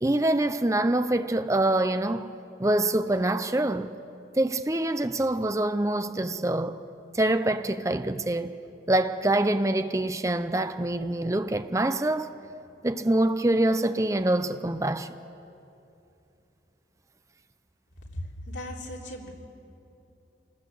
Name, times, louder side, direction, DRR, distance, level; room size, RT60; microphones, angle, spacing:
voice 1, 0.0-2.3 2.6-3.9 4.4-6.8 7.1-8.5 8.9-12.3 12.8-15.1, right 1 dB, 15° right, 0.5 m, -25 dB
voice 2, 18.1-19.3, left 1 dB, 80° left, 3.5 m, -37 dB
27.0 x 19.5 x 7.7 m
head